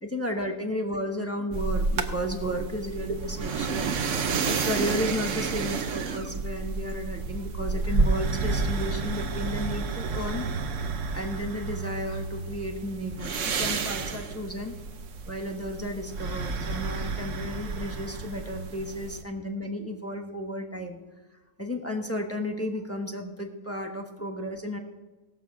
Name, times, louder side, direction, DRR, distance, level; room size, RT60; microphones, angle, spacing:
voice 1, 0.0-3.9 4.4-10.5 11.1-13.3 13.6-14.8 15.3-21.0 21.6-24.8, equal, 10° left, 3 dB, 0.8 m, -33 dB
sound 1, 1.5-19.2, right 4 dB, 60° right, 1.1 m, -30 dB
18.0 x 7.1 x 4.8 m, 1.2 s
omnidirectional pair, 1.6 m